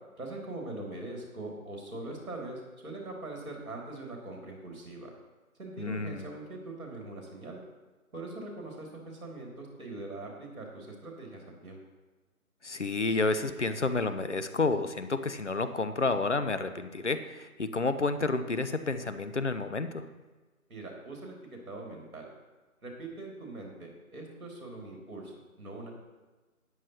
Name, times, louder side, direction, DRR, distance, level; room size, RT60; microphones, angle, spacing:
voice 1, 0.2-5.1 5.6-7.6 8.1-11.8 20.7-22.3 22.8-25.9, right 2 dB, 65° right, -1 dB, 2.8 m, -42 dB
voice 2, 5.8-6.2 12.6-20.1, left 3 dB, 50° left, 10 dB, 0.7 m, -30 dB
12.5 x 9.6 x 3.0 m, 1.2 s
figure-of-eight pair, 175°, 44 cm